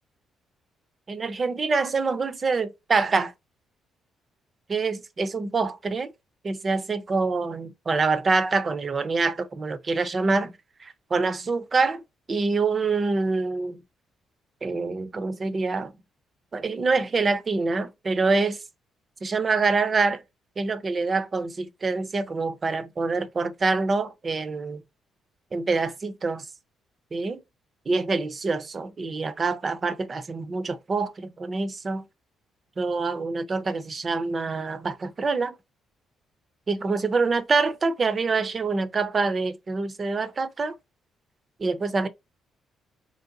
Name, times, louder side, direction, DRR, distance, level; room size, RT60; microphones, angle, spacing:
voice 1, 1.1-3.3 4.7-6.1 6.4-12.0 12.3-13.8 14.6-15.9 16.5-18.6 19.2-20.2 20.6-24.8 25.5-26.5 27.1-27.4 27.9-32.0 32.8-35.5 36.7-40.8 41.6-42.1, right 4 dB, 35° right, 0.5 m, -26 dB
3.2 x 2.6 x 2.6 m
cardioid pair, 90°, 0 cm